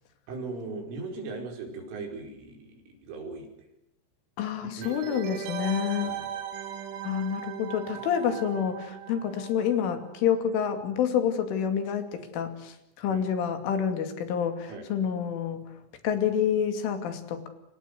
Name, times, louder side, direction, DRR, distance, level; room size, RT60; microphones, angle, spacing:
voice 1, 0.3-3.5 4.6-5.1 5.7-6.3 13.1-13.3 14.7-14.9, right 3 dB, 85° right, 3 dB, 7.6 m, -39 dB
voice 2, 4.4-6.2 7.0-15.6 16.0-17.5, left 8 dB, 80° left, 8 dB, 5.1 m, -28 dB
sound 1, 4.8-10.3 10.5-10.6, right 9 dB, 65° right, 3.6 m, -38 dB
28.5 x 25.5 x 6.7 m, 0.79 s
omnidirectional pair, 5.5 m